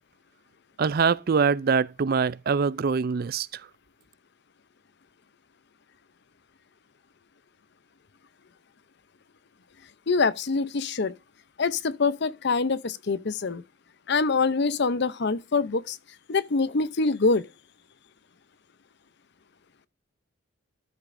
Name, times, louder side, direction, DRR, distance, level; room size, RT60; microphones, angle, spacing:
voice 1, 0.8-3.7, right 5 dB, 45° right, 0.4 m, -24 dB
voice 2, 10.1-11.1 11.6-13.6 14.1-16.0 16.3-17.4, left 4 dB, 55° left, 0.6 m, -25 dB
13.0 x 8.3 x 2.6 m
head